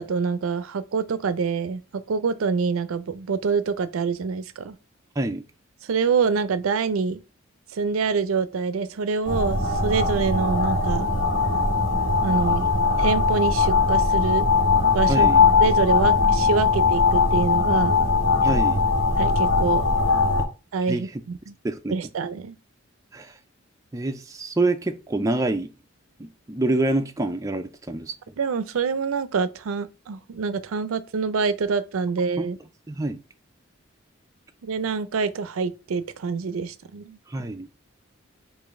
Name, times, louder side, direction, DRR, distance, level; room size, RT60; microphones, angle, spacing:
voice 1, 0.0-4.8 5.9-7.2 7.7-11.1 12.2-12.7 13.0-14.5 14.9-15.3 15.6-18.0 19.1-19.9 20.7-21.5 21.9-22.5 28.4-32.6 34.6-37.2, right 5 dB, 90° right, 0.4 m, -26 dB
sound 1, 9.2-20.4, left 4 dB, 70° left, 1.5 m, -20 dB
voice 2, 15.1-15.4 18.4-18.8 20.9-21.1 21.6-22.0 23.1-23.3 23.9-25.7 26.2-28.1 32.4-32.5 32.9-33.2 37.3-37.7, right 2 dB, 15° right, 0.3 m, -26 dB
5.1 x 2.5 x 3.5 m
head